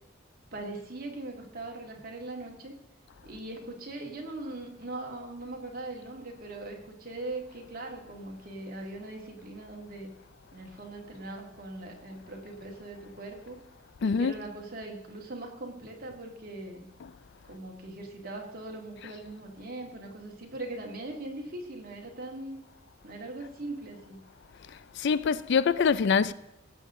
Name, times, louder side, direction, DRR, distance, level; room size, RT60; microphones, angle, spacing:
voice 1, 0.5-2.7 3.2-10.1 10.5-13.6 14.0-16.8 17.4-22.6 23.0-24.2, right 2 dB, 50° right, 2.3 m, -40 dB
voice 2, 14.0-14.3 17.0-17.1 19.0-19.1 24.7-26.3, left 6 dB, 60° left, 0.4 m, -25 dB
16.5 x 7.8 x 3.7 m
head